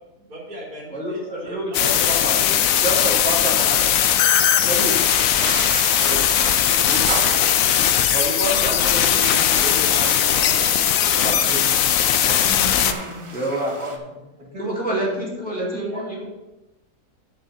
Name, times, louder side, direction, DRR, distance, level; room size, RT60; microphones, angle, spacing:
voice 1, 0.1-3.2 3.6-4.8, right 1 dB, 70° right, -6 dB, 3.2 m, -39 dB
voice 2, 0.9-2.3 2.8-3.8 4.5-4.9 6.0-6.2 6.9-7.2 8.1-10.5 11.2-11.7 13.3-14.0 14.6-16.2, right 1 dB, 5° left, -5 dB, 2.5 m, -28 dB
sound 1, 1.7-12.9, left 10 dB, 70° left, 0.9 m, -19 dB
sound 2, 4.2-14.0, right 3 dB, 35° right, 0.4 m, -33 dB
voice 3, 12.2-13.4 13.9-16.2, left 1 dB, 90° right, -4 dB, 3.0 m, -36 dB
11.5 x 8.3 x 2.7 m, 0.99 s
omnidirectional pair, 1.7 m